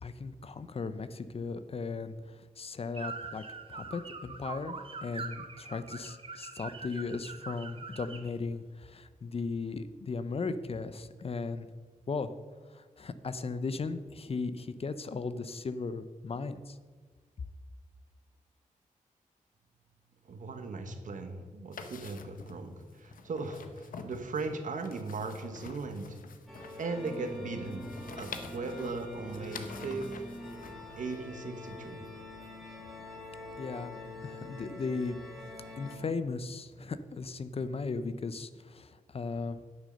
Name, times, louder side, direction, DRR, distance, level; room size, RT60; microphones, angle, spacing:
voice 1, 0.0-3.4 3.7-11.7 12.1-12.3 12.7-16.8 33.6-35.2 35.8-39.6, left 4 dB, 45° left, 12 dB, 0.6 m, -37 dB
sound 1, 2.9-8.3, right 4 dB, 40° right, 1.1 m, -43 dB
voice 2, 20.2-26.2 26.8-30.2 31.0-32.1, right 3 dB, 70° right, 6 dB, 1.3 m, -38 dB
sound 2, 21.7-31.2, left 5 dB, 90° left, 0.9 m, -48 dB
sound 3, 26.5-36.0, left 1 dB, ahead, 2.4 m, -44 dB
10.5 x 6.5 x 6.4 m, 1.5 s
wide cardioid pair, 95°, 14 cm